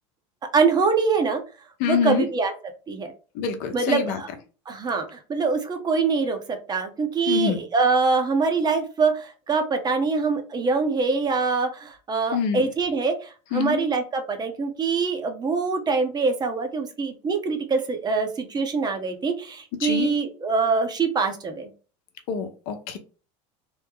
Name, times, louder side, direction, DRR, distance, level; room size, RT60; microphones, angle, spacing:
voice 1, 0.5-1.4 1.9-2.5 2.9-3.1 3.7-4.3 4.7-21.7, right 4 dB, 25° right, 6 dB, 0.7 m, -24 dB
voice 2, 1.8-2.3 3.3-4.2 7.3-7.6 12.3-12.6 13.5-13.8 19.8-20.1 22.3-23.0, left 7 dB, 65° left, 6 dB, 0.8 m, -25 dB
3.1 x 2.1 x 3.7 m, 0.35 s
supercardioid pair, 110°, 16 cm